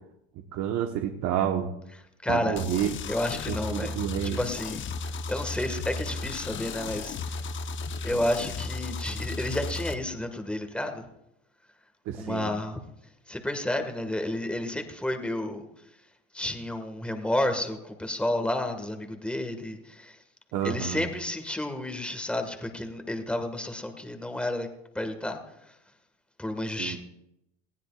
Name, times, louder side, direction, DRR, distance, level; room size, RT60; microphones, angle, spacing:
voice 1, 0.5-1.7 2.3-2.9 3.5-4.4 12.1-12.5 20.5-21.1 26.8-27.0, right 10 dB, 55° right, 3 dB, 1.3 m, -29 dB
voice 2, 2.2-2.6 3.1-4.0 4.4-7.4 8.0-11.1 12.2-12.8 13.3-15.6 16.3-20.2 20.6-24.7 25.0-25.4 26.4-27.0, left 1 dB, 5° left, 6 dB, 1.8 m, -31 dB
sound 1, 2.6-9.9, left 4 dB, 40° left, 1.0 m, -34 dB
19.0 x 16.0 x 2.5 m, 0.85 s
supercardioid pair, 100°, 32 cm